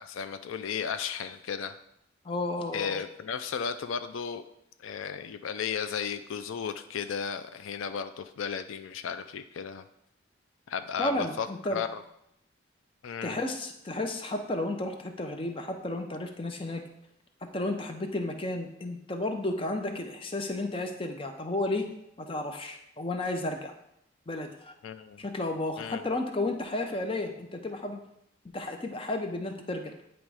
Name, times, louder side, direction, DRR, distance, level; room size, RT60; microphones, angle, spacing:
voice 1, 0.0-1.7 2.7-4.4 4.8-9.8 10.7-12.0 13.0-13.4 24.8-25.2 25.8-26.0, left 6 dB, 80° left, 10 dB, 0.4 m, -34 dB
voice 2, 2.2-3.0 11.0-11.8 13.2-16.8 17.5-21.9 22.2-23.7 24.3-24.7 25.2-28.0 28.5-29.9, left 2 dB, 25° left, 5 dB, 0.6 m, -32 dB
8.9 x 3.1 x 4.8 m, 0.77 s
head